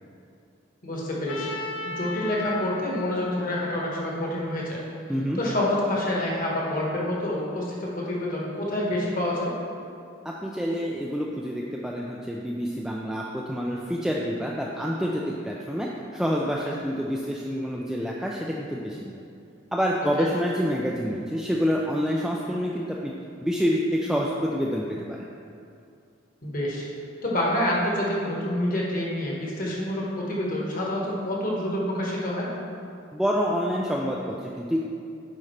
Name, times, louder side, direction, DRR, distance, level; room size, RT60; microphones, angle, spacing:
voice 1, 0.8-1.6 1.8-4.8 5.3-9.5 20.2-20.3 26.4-26.8 27.2-32.5, left 1 dB, 45° left, -4 dB, 1.4 m, -27 dB
Trumpet, 1.3-5.3, left 3 dB, 70° left, 0.5 m, -38 dB
voice 2, 5.1-5.4 10.2-19.2 19.7-23.1 23.4-25.3 33.1-34.8, equal, ahead, -3 dB, 0.3 m, -27 dB
8.6 x 5.3 x 3.2 m, 2.5 s
head